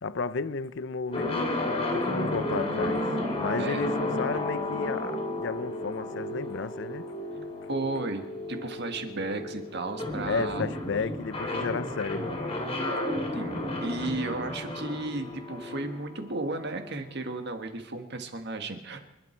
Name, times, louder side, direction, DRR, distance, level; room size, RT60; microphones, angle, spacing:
voice 1, 0.0-3.1 3.4-7.0 10.3-12.7, left 4 dB, 55° left, 0.6 m, -33 dB
sound 1, 1.1-16.9, left 1 dB, 25° left, 2.6 m, -32 dB
voice 2, 7.7-10.7 13.3-19.0, right 2 dB, 50° right, 1.7 m, -34 dB
27.5 x 11.5 x 4.5 m
head